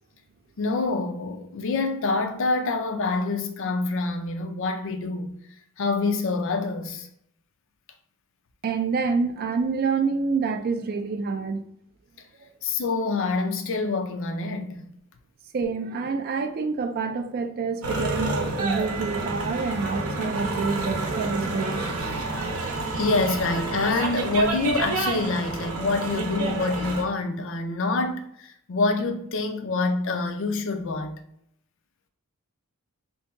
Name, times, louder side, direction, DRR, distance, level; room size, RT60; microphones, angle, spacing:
voice 1, 0.6-5.3 5.8-7.1 12.6-14.9 22.9-31.1, left 3 dB, 60° left, 0.5 m, -26 dB
voice 2, 8.6-11.6 12.4-12.5 15.5-21.8, right 4 dB, 45° right, 0.3 m, -27 dB
sound 1, 17.8-27.0, right 3 dB, 75° right, 0.8 m, -29 dB
2.8 x 2.7 x 3.4 m
head